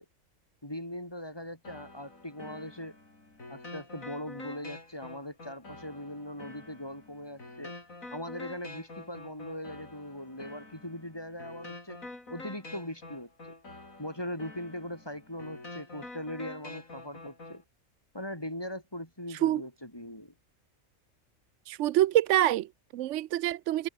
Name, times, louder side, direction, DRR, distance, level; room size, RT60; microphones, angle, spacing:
voice 1, 0.6-3.0 3.5-7.7 8.1-12.0 12.3-13.3 14.0-17.6 18.1-20.3, left 1 dB, 20° left, 3.6 m, -40 dB
sound 1, 1.6-17.6, left 2 dB, 85° left, 5.9 m, -47 dB
voice 2, 19.3-19.6 21.7-23.9, right 13 dB, 70° right, 0.8 m, -26 dB
omnidirectional pair, 1.4 m